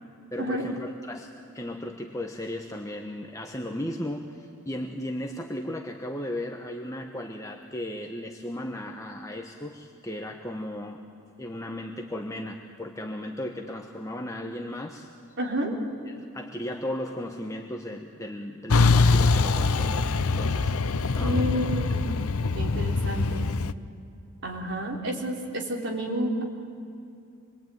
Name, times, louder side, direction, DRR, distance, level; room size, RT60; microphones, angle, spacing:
voice 1, 0.3-11.0 11.4-15.1 16.1-20.8 21.1-21.6 22.1-22.2, left 1 dB, 15° left, 2 dB, 1.1 m, -36 dB
voice 2, 15.4-15.8 21.2-22.2 22.5-23.5 24.4-26.4, equal, 55° right, 0 dB, 4.0 m, -30 dB
Truck, 18.7-23.7, left 3 dB, 75° left, 0.7 m, -23 dB
27.0 x 22.0 x 9.3 m, 2.6 s
head